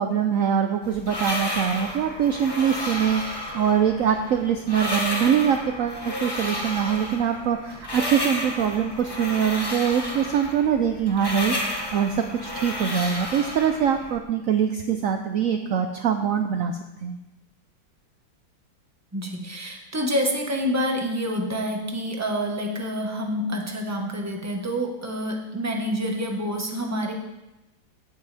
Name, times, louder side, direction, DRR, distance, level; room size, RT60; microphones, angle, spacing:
voice 1, 0.0-17.2, right 8 dB, 70° right, 6 dB, 0.7 m, -23 dB
sound 1, 0.8-14.2, left 1 dB, 15° left, 1.1 m, -32 dB
voice 2, 19.1-27.1, equal, 10° right, 1 dB, 1.1 m, -27 dB
16.0 x 8.3 x 3.4 m, 0.99 s
omnidirectional pair, 2.1 m